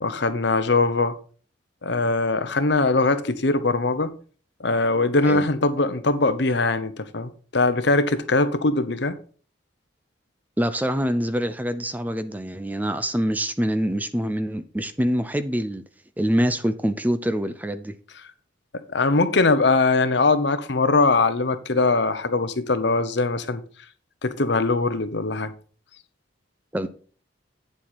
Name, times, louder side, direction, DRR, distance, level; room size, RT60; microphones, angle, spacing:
voice 1, 0.0-1.2 1.8-4.1 4.6-9.2 18.7-23.6 24.2-25.5, left 3 dB, 60° left, 0.9 m, -21 dB
voice 2, 10.6-15.8 16.2-18.0 26.7-26.9, equal, 10° right, 0.5 m, -25 dB
9.0 x 7.4 x 4.2 m
head